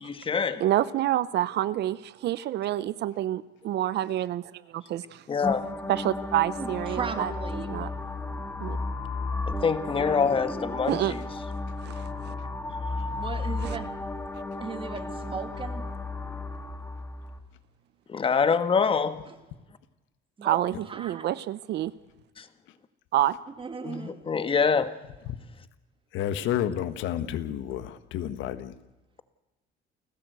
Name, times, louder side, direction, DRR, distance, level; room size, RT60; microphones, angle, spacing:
voice 1, 0.0-0.6 5.3-5.7 9.5-11.2 18.1-19.2 22.4-22.5 23.9-25.0, left 5 dB, 25° left, 11 dB, 1.4 m, -25 dB
voice 2, 0.6-5.2 5.9-7.3 7.7-7.9 8.6-8.8 10.9-11.2 11.8-12.3 20.4-21.9 23.1-23.4, right 13 dB, 60° right, 16 dB, 0.7 m, -28 dB
sound 1, 5.4-17.4, left 2 dB, 10° left, 2.1 m, -34 dB
voice 3, 6.6-7.9 13.2-13.9 14.6-15.8 19.3-19.4 20.4-21.3 23.5-24.2, right 5 dB, 25° right, 8 dB, 2.3 m, -37 dB
Boom, 10.0-11.8, right 1 dB, 5° right, 2.7 m, -42 dB
voice 4, 26.1-28.7, left 10 dB, 75° left, 12 dB, 1.5 m, -30 dB
29.0 x 15.0 x 8.2 m, 1.1 s
cardioid pair, 135°, 20 cm